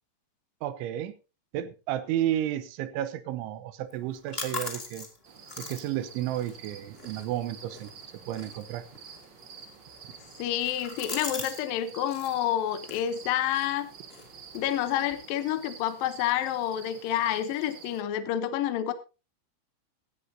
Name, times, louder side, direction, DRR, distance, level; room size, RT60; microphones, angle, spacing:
voice 1, 0.6-1.1 1.5-5.1 5.6-7.9 8.3-8.8, right 12 dB, 90° right, 13 dB, 3.4 m, -32 dB
sound 1, 3.9-11.6 11.9-12.4 12.8-15.1, left 3 dB, 25° left, 1.3 m, -42 dB
sound 2, 5.2-18.0, right 6 dB, 65° right, 1.1 m, -49 dB
voice 2, 10.4-13.9 14.5-18.9, left 11 dB, 75° left, 11 dB, 2.2 m, -29 dB
16.5 x 13.0 x 2.8 m, 0.30 s
omnidirectional pair, 5.3 m